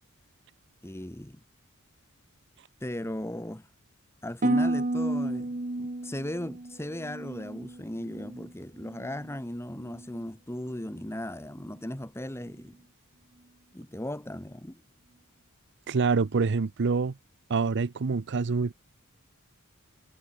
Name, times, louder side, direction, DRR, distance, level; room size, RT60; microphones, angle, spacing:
voice 1, 0.8-1.4 2.8-3.7 4.2-12.8 13.7-14.8, left 1 dB, 10° left, 1.6 m, -37 dB
Harp, 4.4-8.5 8.8-9.4 9.9-10.2, right 2 dB, 40° right, 1.2 m, -31 dB
voice 2, 15.9-17.1 17.5-18.7, right 4 dB, 55° right, 0.6 m, -26 dB
head